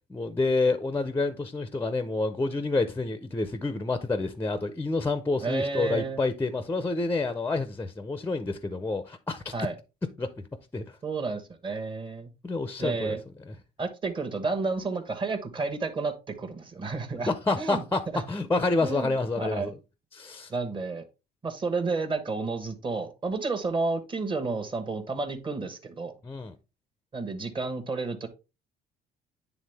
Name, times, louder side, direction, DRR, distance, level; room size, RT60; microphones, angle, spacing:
voice 1, 0.1-9.5 10.2-10.4 10.7-10.8 12.4-13.2 13.5-13.6 17.3-19.8 20.1-20.5 26.2-26.5, left 3 dB, 15° left, 0.5 m, -28 dB
voice 2, 5.4-6.2 9.5-9.8 11.0-12.3 12.8-13.2 13.8-17.3 17.6-17.8 18.1-18.2 18.8-19.7 20.5-21.0 21.4-26.1 27.1-28.3, right 3 dB, 30° right, 1.2 m, -31 dB
9.3 x 3.5 x 3.4 m
cardioid pair, 110°, 17 cm